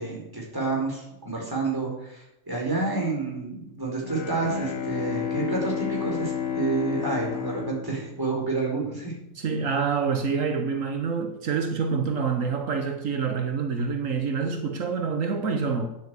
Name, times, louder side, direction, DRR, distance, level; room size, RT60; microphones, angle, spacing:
voice 1, 0.0-9.1, right 3 dB, 15° right, 4.9 m, -29 dB
Bowed string instrument, 4.0-8.8, left 8 dB, 80° left, 1.5 m, -31 dB
voice 2, 9.3-15.9, right 5 dB, 75° right, 1.5 m, -27 dB
9.6 x 9.1 x 8.2 m
omnidirectional pair, 1.4 m